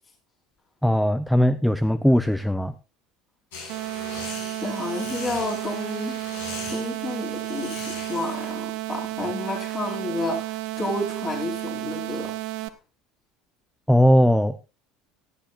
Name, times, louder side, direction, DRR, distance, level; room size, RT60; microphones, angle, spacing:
voice 1, 0.8-2.7 13.9-14.5, equal, ahead, 13 dB, 0.7 m, -19 dB
sound 1, 3.5-8.5, left 4 dB, 65° left, 7.7 m, -40 dB
sound 2, 3.7-12.7, right 17 dB, 55° right, 1.0 m, -32 dB
voice 2, 4.6-6.2 6.7-12.3, left 2 dB, 25° left, 1 dB, 4.7 m, -31 dB
18.0 x 12.5 x 2.5 m, 0.29 s
figure-of-eight pair, 70°, 0 cm